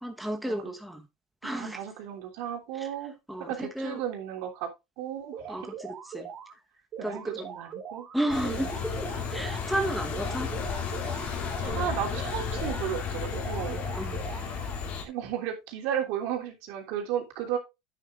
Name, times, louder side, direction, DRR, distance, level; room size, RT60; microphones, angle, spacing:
voice 1, 0.0-1.0 1.4-1.8 2.8-2.9 3.3-4.0 5.5-6.3 7.0-7.5 8.1-10.5 13.9-14.3, right 1 dB, ahead, 1.1 m, -33 dB
voice 2, 1.4-3.1 3.5-4.7 5.0-5.7 7.0-8.1 8.5-8.7 11.2-13.8 15.0-17.6, right 10 dB, 65° right, 3.0 m, -34 dB
sound 1, 5.3-6.5 6.9-9.7 10.1-12.9 13.3-14.9, right 7 dB, 40° right, 2.9 m, -41 dB
sound 2, 8.3-15.0, left 6 dB, 45° left, 2.6 m, -33 dB
10.0 x 8.9 x 2.5 m
supercardioid pair, 105°, 3 cm